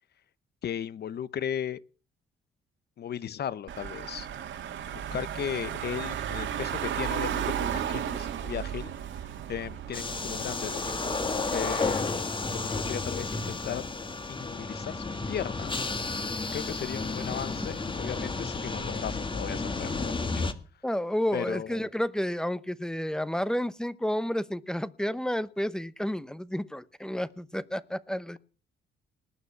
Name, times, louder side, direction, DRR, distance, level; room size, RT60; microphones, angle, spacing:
voice 1, 0.6-1.8 3.0-4.3 4.9-8.9 9.5-11.2 11.5-13.9 14.3-15.9 16.5-20.5 21.3-21.9, left 9 dB, 55° left, 0.8 m, -36 dB
Car / Engine, 3.7-11.9, right 9 dB, 70° right, 2.2 m, -34 dB
sound 1, 9.9-20.5, left 3 dB, 25° left, 1.6 m, -32 dB
voice 2, 20.8-28.4, equal, 5° left, 0.9 m, -31 dB
19.0 x 6.9 x 7.3 m
cardioid pair, 90°, 20 cm